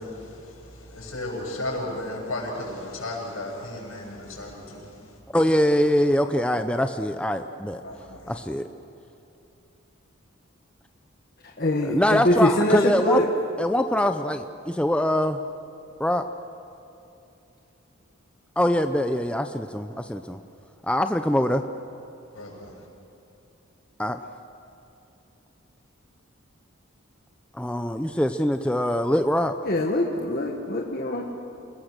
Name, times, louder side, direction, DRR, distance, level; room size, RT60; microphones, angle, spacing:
voice 1, 0.0-4.9 7.8-8.3 22.3-22.7, left 1 dB, 80° left, -2 dB, 7.5 m, -34 dB
voice 2, 5.3-7.8 8.3-8.6 11.9-13.2 13.6-15.4 16.0-16.2 18.6-20.4 20.8-21.6 24.0-24.2 27.5-29.5, left 1 dB, 5° left, 7 dB, 0.5 m, -23 dB
voice 3, 11.6-13.2 29.6-31.2, left 1 dB, 45° left, 0 dB, 1.5 m, -23 dB
28.0 x 20.5 x 6.7 m, 2.8 s
head